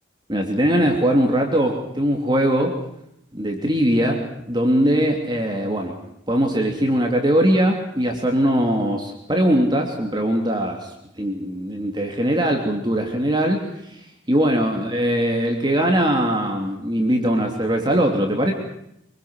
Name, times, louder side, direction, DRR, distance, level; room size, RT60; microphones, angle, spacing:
voice 1, 0.3-2.8 3.3-5.9 6.3-14.0 14.3-18.5, right 1 dB, 25° right, 2 dB, 3.1 m, -21 dB
25.5 x 23.0 x 6.4 m, 0.77 s
head